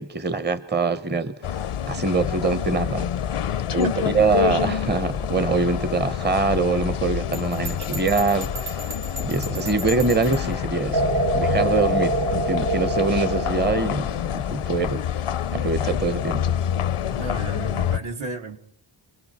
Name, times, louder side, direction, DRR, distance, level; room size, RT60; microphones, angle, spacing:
voice 1, 0.0-1.6 1.9-3.1 3.7-8.9 9.2-15.0 15.5-16.6, right 4 dB, 20° right, 0.8 m, -24 dB
sound 1, 1.4-18.0, left 9 dB, 85° left, 0.8 m, -27 dB
voice 2, 3.8-4.3 7.8-7.9 17.1-18.6, right 2 dB, 70° right, 2.0 m, -33 dB
Bell, 7.3-10.5, right 2 dB, 85° right, 3.6 m, -36 dB
sound 2, 8.0-9.8 10.9-13.8, right 1 dB, 50° right, 1.4 m, -26 dB
29.0 x 21.0 x 4.2 m
wide cardioid pair, 75°, 50 cm